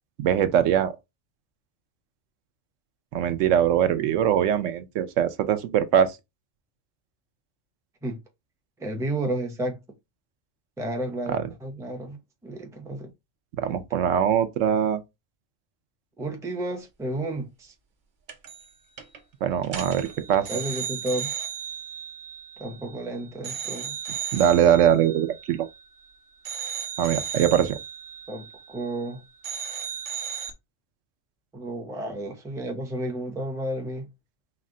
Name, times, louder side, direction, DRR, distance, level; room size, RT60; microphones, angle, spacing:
voice 1, 0.2-0.9 3.1-6.2 11.3-11.4 13.6-15.0 19.4-20.5 24.3-25.7 27.0-27.8, right 9 dB, 80° right, 0.9 m, -22 dB
voice 2, 8.8-9.8 10.8-12.2 12.4-13.1 13.6-13.8 16.2-17.7 20.5-21.3 22.6-23.9 28.3-29.2 31.5-34.1, right 1 dB, 5° right, 0.4 m, -32 dB
sound 1, 18.3-18.7 19.0-19.2 19.6-23.0 23.4-26.0 26.4-29.1 29.4-30.5, right 8 dB, 45° right, 0.8 m, -35 dB
4.8 x 2.2 x 3.7 m
omnidirectional pair, 1.3 m